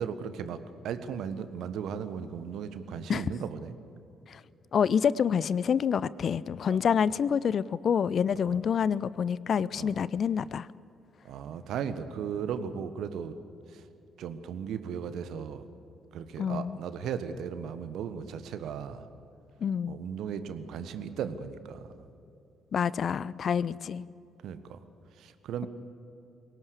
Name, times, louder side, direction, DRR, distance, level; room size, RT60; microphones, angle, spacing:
voice 1, 0.0-3.7 8.5-8.6 9.8-10.0 11.2-13.4 13.7-13.9 14.2-15.7 16.1-19.1 19.9-22.1 24.4-24.8 25.1-25.7, right 7 dB, 60° right, 11 dB, 1.3 m, -36 dB
voice 2, 4.7-10.7 16.4-16.8 19.6-20.0 22.7-24.1, left 7 dB, 50° left, 21 dB, 0.5 m, -27 dB
23.5 x 18.0 x 8.3 m, 2.8 s
figure-of-eight pair, 45°, 0 cm